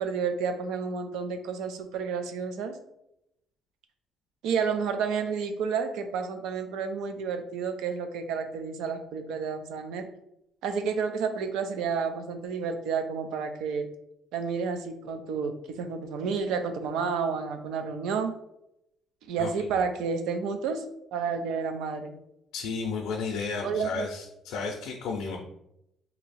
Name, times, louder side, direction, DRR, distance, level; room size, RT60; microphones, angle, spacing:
voice 1, 0.0-2.7 4.4-10.1 10.6-13.9 14.3-18.3 19.3-20.8 21.1-22.2 23.6-24.1, right 5 dB, 80° right, 7 dB, 0.4 m, -30 dB
voice 2, 22.5-25.4, left 4 dB, 80° left, 0 dB, 0.5 m, -33 dB
2.8 x 2.7 x 4.1 m, 0.81 s
cardioid pair, 180°, 0 cm